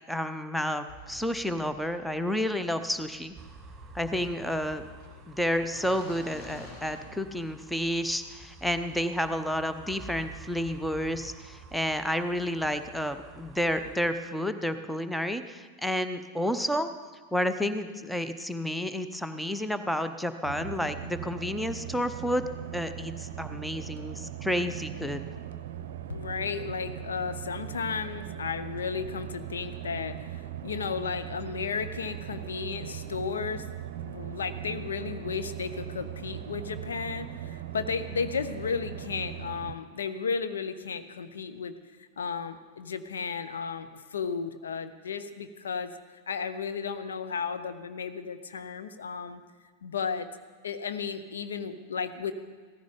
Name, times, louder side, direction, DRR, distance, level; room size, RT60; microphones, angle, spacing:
voice 1, 0.1-3.3 3.9-4.9 5.3-16.9 17.3-22.5 22.7-25.2, equal, ahead, 10 dB, 0.8 m, -30 dB
sound 1, 0.9-7.8, left 2 dB, 45° left, 3.1 m, -50 dB
sound 2, 3.4-14.1, right 4 dB, 15° right, 1.9 m, -49 dB
sound 3, 20.4-39.7, right 10 dB, 55° right, 0.7 m, -39 dB
voice 2, 26.1-33.6 34.0-41.8 42.2-45.9 46.3-49.4 49.8-50.3 50.6-52.3, left 6 dB, 70° left, 10 dB, 0.8 m, -34 dB
16.5 x 14.5 x 5.1 m, 1.4 s
figure-of-eight pair, 90°, 0 cm